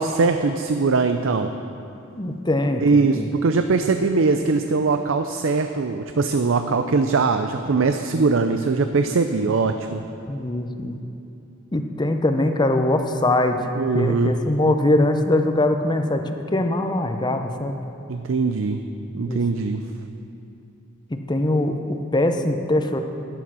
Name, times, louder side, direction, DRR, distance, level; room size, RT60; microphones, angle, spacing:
voice 1, 0.0-1.5 2.8-10.0 13.7-14.4 18.1-18.8 19.1-19.8, right 4 dB, 75° right, 7 dB, 0.5 m, -21 dB
voice 2, 2.2-3.3 10.3-11.0 11.7-13.6 13.9-17.8 19.2-19.4 21.1-23.0, left 1 dB, 20° left, 6 dB, 0.7 m, -22 dB
12.5 x 10.0 x 6.1 m, 2.7 s
head